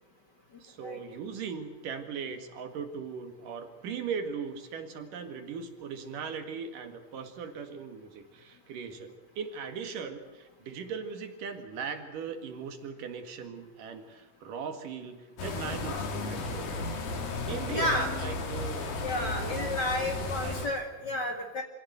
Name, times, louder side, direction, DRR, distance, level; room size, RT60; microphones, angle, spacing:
voice 1, 0.6-17.2 17.5-19.0 19.2-20.6, right 6 dB, 70° right, 7 dB, 3.5 m, -39 dB
sound 1, 15.4-20.7, left 3 dB, 85° left, 4.4 m, -34 dB
voice 2, 17.7-18.1 19.0-21.6, left 1 dB, 35° left, 4 dB, 2.0 m, -31 dB
26.0 x 16.5 x 8.0 m, 1.2 s
omnidirectional pair, 3.9 m